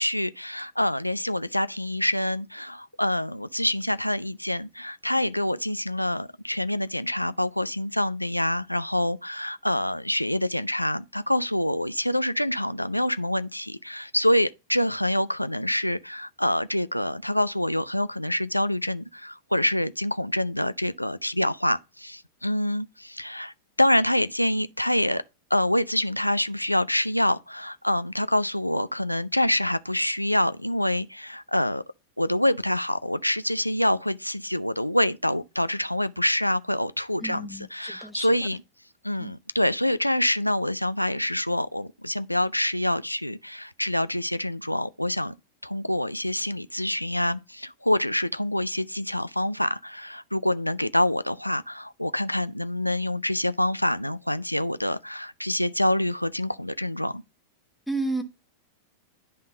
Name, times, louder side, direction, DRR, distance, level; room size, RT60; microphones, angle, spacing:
voice 1, 0.0-25.2 25.5-31.8 32.2-38.6 39.0-45.3 45.6-57.2, left 1 dB, 90° left, 0.3 m, -26 dB
voice 2, 37.2-38.3 39.2-39.3 57.9-58.2, right 2 dB, ahead, 1.1 m, -32 dB
10.5 x 3.7 x 3.7 m
figure-of-eight pair, 95°, 0 cm